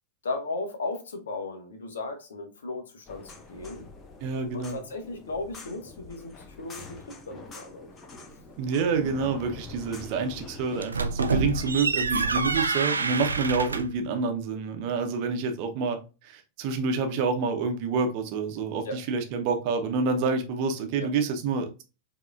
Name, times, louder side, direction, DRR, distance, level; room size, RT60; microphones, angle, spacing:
voice 1, 0.2-3.9 4.5-7.9 18.8-19.0 21.0-21.1, left 3 dB, 65° left, 1.0 m, -36 dB
sound 1, 3.1-10.8, left 3 dB, 25° left, 1.1 m, -45 dB
voice 2, 4.2-4.8 8.6-21.8, right 4 dB, 45° right, 0.8 m, -28 dB
sound 2, 10.7-14.0, right 4 dB, 75° right, 0.3 m, -27 dB
4.8 x 2.9 x 2.4 m
figure-of-eight pair, 90°, 0 cm